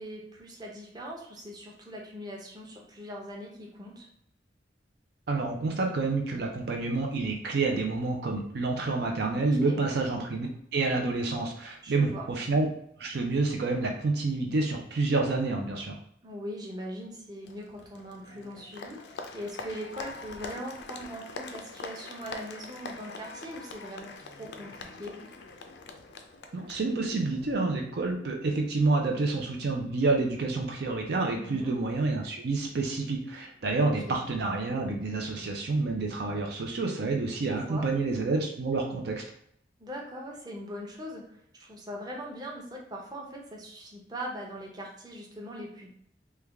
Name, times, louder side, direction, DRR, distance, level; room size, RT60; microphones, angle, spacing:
voice 1, 0.0-4.1 9.3-9.8 11.8-12.2 16.2-24.1 24.4-25.1 31.3-31.8 34.1-34.2 37.5-37.9 39.8-45.9, equal, 25° right, -2 dB, 0.7 m, -41 dB
voice 2, 5.3-12.7 13.0-16.0 26.5-39.2, right 3 dB, 60° right, 2 dB, 0.5 m, -28 dB
Applause, 17.4-27.5, left 3 dB, 70° left, 0.4 m, -44 dB
3.3 x 2.2 x 3.4 m, 0.70 s
head